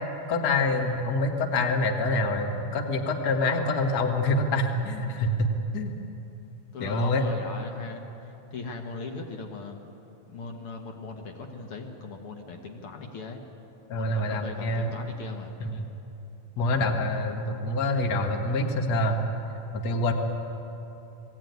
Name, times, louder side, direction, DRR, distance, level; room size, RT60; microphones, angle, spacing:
voice 1, 0.3-5.9 6.8-7.2 13.9-14.9 15.6-15.9 16.6-19.2 19.7-20.1, left 2 dB, 70° left, 3 dB, 0.9 m, -26 dB
voice 2, 6.7-9.8 10.3-13.4 13.9-15.6, left 3 dB, 55° left, 4 dB, 1.7 m, -39 dB
20.5 x 16.0 x 9.4 m, 3.0 s
omnidirectional pair, 4.2 m